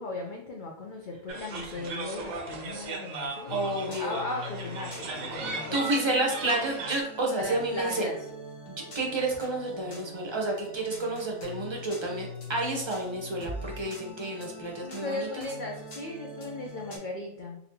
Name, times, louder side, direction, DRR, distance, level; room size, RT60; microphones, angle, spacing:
voice 1, 0.0-6.1 7.4-8.2 14.8-17.6, left 2 dB, 70° left, 0 dB, 0.4 m, -37 dB
sound 1, 1.3-7.0, right 3 dB, 75° right, 1.1 m, -37 dB
sound 2, 3.5-17.0, left 1 dB, 45° left, 1.0 m, -43 dB
voice 2, 3.5-4.2 5.5-8.1 8.7-15.5, right 2 dB, 30° right, -1 dB, 0.6 m, -30 dB
4.1 x 2.7 x 2.7 m, 0.70 s
omnidirectional pair, 1.5 m